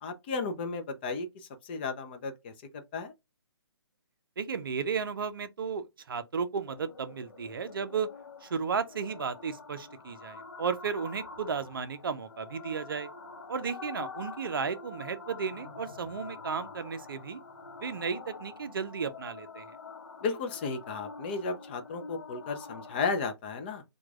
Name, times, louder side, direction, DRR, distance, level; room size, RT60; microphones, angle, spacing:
voice 1, 0.0-3.1 20.2-23.8, left 4 dB, 25° left, 0.4 m, -34 dB
voice 2, 4.4-8.1 8.4-13.1 13.5-17.4 17.8-19.8, right 6 dB, 55° right, 0.5 m, -34 dB
sound 1, 6.7-23.2, left 4 dB, 55° left, 0.8 m, -46 dB
4.5 x 2.3 x 2.3 m
figure-of-eight pair, 135°, 14 cm